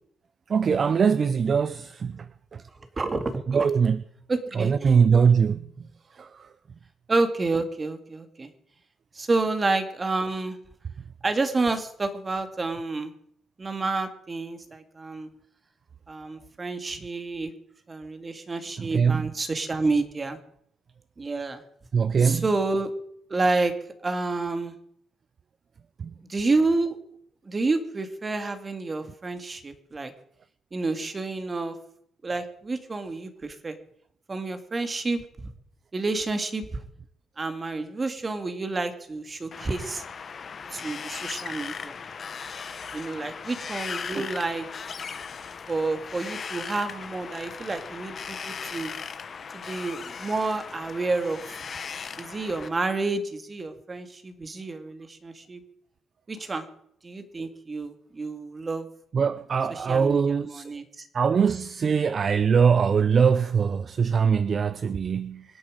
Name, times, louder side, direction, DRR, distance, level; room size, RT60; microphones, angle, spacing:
voice 1, 0.5-2.3 2.5-2.6 3.5-4.0 4.6-5.6 6.2-6.3 18.8-19.3 21.9-22.4 26.0-26.1 44.2-44.3 59.1-60.6 61.1-65.4, right 6 dB, 45° right, 0.6 m, -22 dB
voice 2, 3.0-3.7 4.3-4.9 7.1-8.5 9.2-10.6 11.2-13.1 13.6-15.3 16.1-17.5 17.9-20.4 21.2-21.6 22.2-22.9 23.3-23.7 24.0-24.7 26.3-27.0 27.4-30.1 30.7-31.7 32.2-33.8 34.3-35.5 35.9-36.8 37.4-40.0 40.7-41.9 42.9-44.7 45.7-48.9 49.5-51.6 52.2-55.6 56.3-56.7 57.0-58.9 59.7-61.1, right 3 dB, 30° right, 2.1 m, -29 dB
Wind, 39.5-52.7, left 6 dB, 45° left, 1.2 m, -38 dB
25.5 x 8.7 x 5.2 m
cardioid pair, 90°, 0 cm